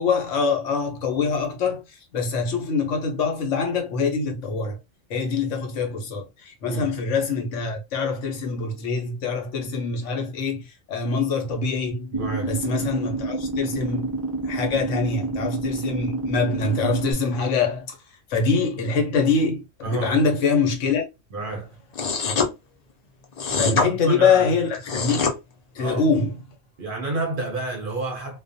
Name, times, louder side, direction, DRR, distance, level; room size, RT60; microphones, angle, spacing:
voice 1, 0.0-4.8 5.1-12.1 12.4-14.2 14.4-18.0 18.3-21.0 23.6-25.3 25.7-26.3, left 4 dB, 75° left, 1.0 m, -24 dB
voice 2, 6.6-7.0 12.1-12.5 19.8-20.2 21.3-21.8 23.6-24.5 25.8-26.0 26.8-28.4, right 2 dB, 55° right, 0.7 m, -29 dB
sound 1, 12.1-17.1, right 3 dB, 35° right, 0.3 m, -28 dB
sound 2, 21.9-22.5 23.4-23.9 24.7-25.3, left 4 dB, 55° left, 0.4 m, -23 dB
2.4 x 2.1 x 2.5 m
omnidirectional pair, 1.3 m